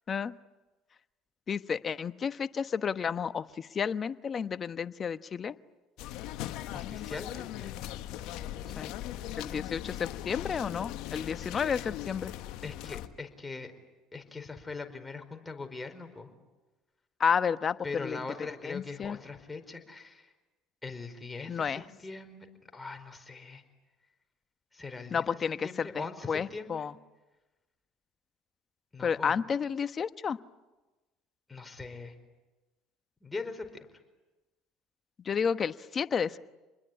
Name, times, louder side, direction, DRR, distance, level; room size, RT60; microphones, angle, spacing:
voice 1, 1.5-5.5 8.8-8.9 9.4-12.3 17.2-18.2 18.6-19.2 21.5-21.8 25.1-26.9 29.0-30.4 35.2-36.4, left 6 dB, 40° left, 12 dB, 1.1 m, -31 dB
sound 1, 6.0-13.1, left 13 dB, 65° left, 1.4 m, -39 dB
voice 2, 6.7-7.7 11.7-11.9 12.6-13.7 14.1-16.3 17.8-20.3 20.8-22.5 22.7-23.6 24.7-25.2 25.6-26.9 28.9-29.4 31.5-32.1 33.2-33.9, left 3 dB, 15° left, 6 dB, 4.8 m, -41 dB
28.0 x 21.0 x 9.9 m, 1.1 s
hypercardioid pair, 75°, 0 cm